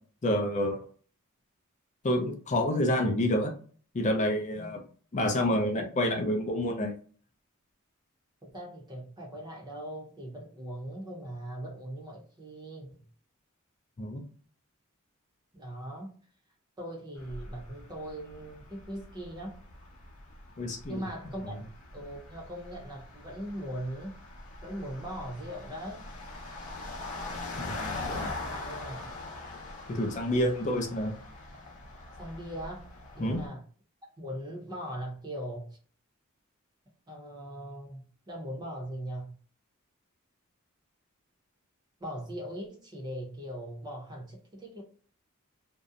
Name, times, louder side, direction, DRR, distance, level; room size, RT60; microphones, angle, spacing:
voice 1, 0.2-0.9 2.0-3.5 3.9-4.8 5.1-6.9 14.0-14.2 20.6-21.0 21.4-21.5 27.6-27.9 29.9-31.1 33.2-33.4, left 1 dB, 35° left, 0.5 m, -28 dB
voice 2, 8.4-13.0 15.5-16.1 16.8-19.6 20.9-21.7 21.9-24.2 24.6-26.0 27.8-29.1 32.2-32.9 33.1-33.6 34.2-35.8 37.1-39.3 42.0-44.8, right 1 dB, 20° right, 0.7 m, -40 dB
sound 1, 17.2-33.5, left 2 dB, 85° left, 0.7 m, -42 dB
2.6 x 2.0 x 2.4 m
head